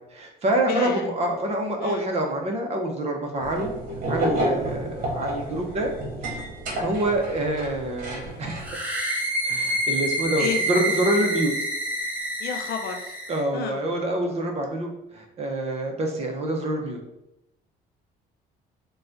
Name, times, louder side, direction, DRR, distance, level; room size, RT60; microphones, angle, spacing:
voice 1, 0.1-3.7 4.1-5.9 6.2-6.4 6.8-8.6 9.4-11.5 13.3-17.0, right 1 dB, 40° right, 2 dB, 0.8 m, -26 dB
voice 2, 0.6-1.1 1.8-2.1 10.4-10.6 12.4-13.2 13.5-13.8, left 7 dB, 70° left, 4 dB, 0.6 m, -31 dB
sound 1, 3.4-8.7, right 1 dB, 55° right, 1.3 m, -30 dB
sound 2, 8.6-13.4, right 1 dB, 10° right, 0.8 m, -27 dB
3.9 x 2.3 x 3.8 m, 0.88 s
cardioid pair, 110°, 17 cm